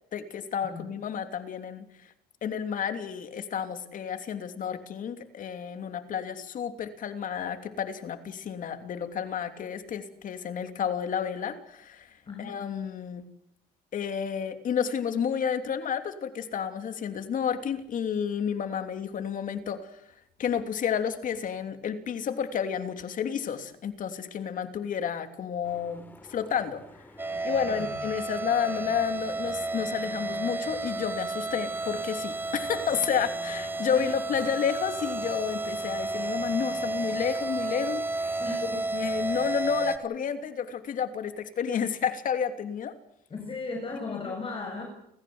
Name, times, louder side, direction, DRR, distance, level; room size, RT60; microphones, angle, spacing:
voice 1, 0.1-2.1 2.4-13.2 13.9-20.0 20.4-26.0 26.3-26.8 27.4-38.4 38.7-42.9 44.1-44.3, left 7 dB, 50° left, 8 dB, 3.1 m, -31 dB
voice 2, 12.3-12.6 27.7-28.0 33.9-34.1 38.4-38.9 43.3-44.8, left 3 dB, 30° left, 2 dB, 6.8 m, -36 dB
sound 1, 25.6-38.9, left 1 dB, 10° left, 3.6 m, -52 dB
sound 2, 27.2-40.0, right 2 dB, 15° right, 2.1 m, -32 dB
29.5 x 15.0 x 8.0 m, 0.76 s
cardioid pair, 110°, 17 cm